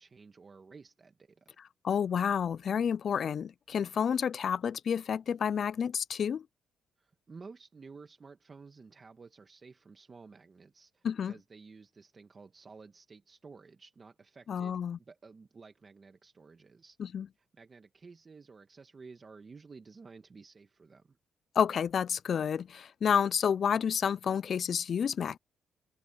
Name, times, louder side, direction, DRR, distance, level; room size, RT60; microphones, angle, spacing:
voice 1, 0.0-1.6 7.0-17.0 17.4-21.2, right 4 dB, 35° right, 1.5 m, -53 dB
voice 2, 1.8-6.4 11.0-11.3 14.5-15.0 17.0-17.3 21.6-25.4, left 7 dB, 55° left, 0.4 m, -30 dB
cardioid pair, 90°, 0 cm